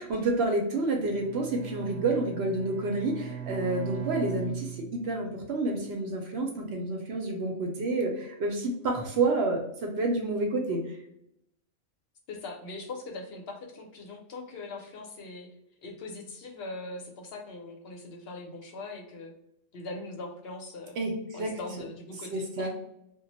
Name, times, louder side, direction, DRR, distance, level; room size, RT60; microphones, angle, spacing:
voice 1, 0.0-11.0 21.0-21.6 22.3-22.7, right 2 dB, 65° right, 1 dB, 0.8 m, -29 dB
Bowed string instrument, 1.0-5.4, right 9 dB, 85° right, 1.0 m, -39 dB
voice 2, 12.3-15.5 15.8-19.3 19.7-21.1 21.3-22.7, left 2 dB, 60° left, 1 dB, 0.7 m, -41 dB
2.2 x 2.0 x 3.8 m, 0.79 s
omnidirectional pair, 1.3 m